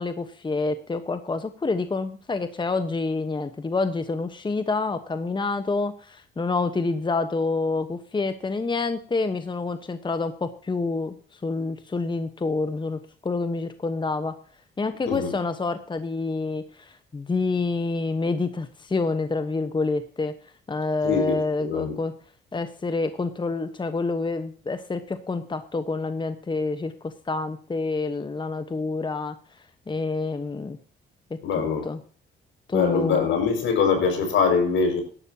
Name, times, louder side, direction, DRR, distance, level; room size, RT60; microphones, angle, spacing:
voice 1, 0.0-14.4 14.8-22.1 22.5-30.8 31.3-32.0 32.7-33.3, left 3 dB, 25° left, 10 dB, 1.1 m, -28 dB
voice 2, 21.0-22.0 31.4-31.9 32.7-35.0, left 5 dB, 75° left, 5 dB, 5.6 m, -23 dB
17.0 x 12.0 x 2.9 m, 0.42 s
cardioid pair, 90°, 20 cm